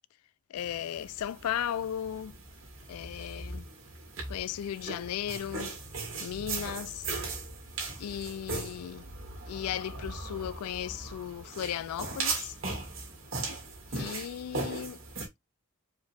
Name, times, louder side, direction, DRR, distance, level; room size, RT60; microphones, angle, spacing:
voice 1, 0.5-2.4 2.9-3.7 4.3-5.7 6.2-7.1 8.0-9.1 9.5-12.5 13.9-15.0, left 10 dB, 85° left, 0.3 m, -36 dB
sound 1, 0.6-15.3, right 3 dB, 60° right, 2.0 m, -38 dB
4.7 x 2.8 x 3.5 m
head